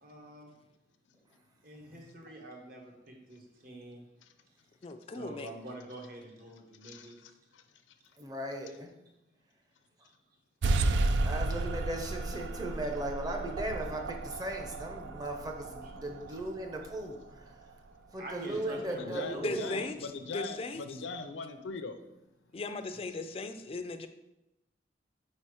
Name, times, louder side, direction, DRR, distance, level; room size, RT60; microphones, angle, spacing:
voice 1, 0.0-0.5 1.6-4.0 5.1-7.2 15.8-15.9 18.2-20.1, right 1 dB, 50° right, 1 dB, 1.1 m, -46 dB
voice 2, 4.8-5.5 19.4-21.0 22.5-24.1, left 3 dB, 30° left, 9 dB, 0.4 m, -38 dB
voice 3, 6.8-7.6 15.1-16.4 18.9-22.0, left 4 dB, 85° left, 8 dB, 0.5 m, -42 dB
voice 4, 8.2-8.9 11.2-17.4 18.1-19.9, right 1 dB, 20° right, 3 dB, 0.7 m, -37 dB
sound 1, 10.6-17.7, right 2 dB, 70° right, 0.4 m, -33 dB
4.6 x 4.3 x 4.8 m, 0.95 s
head